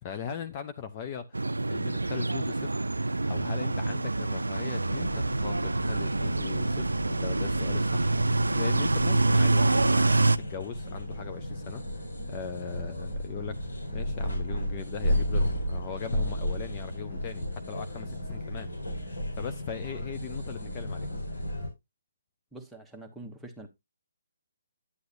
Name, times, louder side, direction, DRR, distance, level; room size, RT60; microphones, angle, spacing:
voice 1, 0.0-11.8 12.3-18.7 19.0-21.1, left 8 dB, 30° left, 0.7 m, -40 dB
sound 1, 1.3-10.4, right 2 dB, 90° right, 0.4 m, -26 dB
sound 2, 4.8-21.7, equal, 90° left, 4.4 m, -34 dB
voice 2, 22.5-23.7, right 2 dB, 5° right, 1.2 m, -44 dB
9.8 x 7.8 x 2.6 m
figure-of-eight pair, 145°, 0 cm